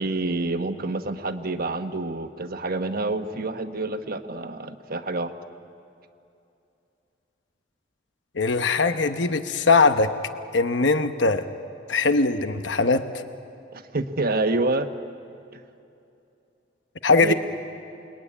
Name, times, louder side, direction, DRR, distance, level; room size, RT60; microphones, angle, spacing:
voice 1, 0.0-5.3 13.7-14.9 17.2-17.3, right 2 dB, 55° right, 7 dB, 1.2 m, -27 dB
voice 2, 8.3-10.1 10.5-11.4 11.9-13.0 17.0-17.3, left 3 dB, 80° left, 8 dB, 1.0 m, -20 dB
28.5 x 21.0 x 9.9 m, 2.7 s
head